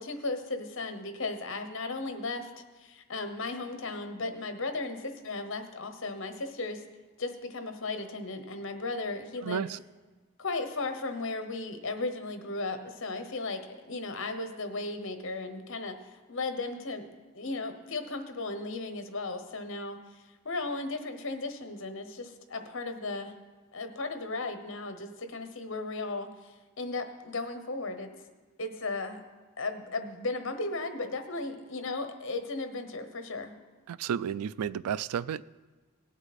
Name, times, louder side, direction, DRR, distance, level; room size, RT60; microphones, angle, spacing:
voice 1, 0.0-2.5 2.8-6.8 7.2-9.7 10.4-16.0 16.3-17.1 17.3-23.3 23.7-28.1 28.6-29.2 29.6-33.5, left 3 dB, 55° left, 8 dB, 1.0 m, -36 dB
voice 2, 9.4-9.8 33.9-35.4, right 8 dB, 85° right, 18 dB, 0.3 m, -32 dB
18.0 x 8.0 x 4.2 m, 1.3 s
head